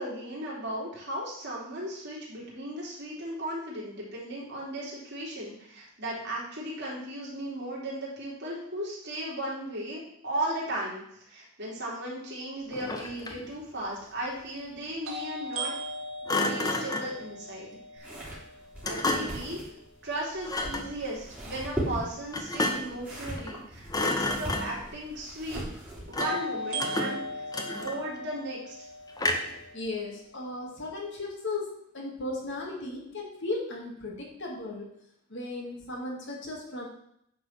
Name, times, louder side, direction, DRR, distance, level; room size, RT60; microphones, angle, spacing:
voice 1, 0.0-15.7 16.3-18.1 18.8-19.6 20.0-25.6 26.1-28.8, right 1 dB, 50° right, -5 dB, 3.6 m, -36 dB
Thump thud, 12.7-13.5 16.3-17.2 18.8-19.5 20.4-20.9 22.3-23.0 23.4-23.6 23.9-24.9 26.1-26.5 26.8-28.2 29.2-29.6, left 2 dB, 15° left, 0.8 m, -31 dB
sound 1, 13.1-13.2 15.0-19.0 26.2-30.2, equal, 70° right, 3.0 m, -38 dB
sound 2, 18.0-26.2, equal, 10° right, 3.2 m, -39 dB
voice 2, 29.7-34.9 35.3-36.9, left 2 dB, 55° left, -1 dB, 2.3 m, -36 dB
9.7 x 4.9 x 6.0 m, 0.73 s
head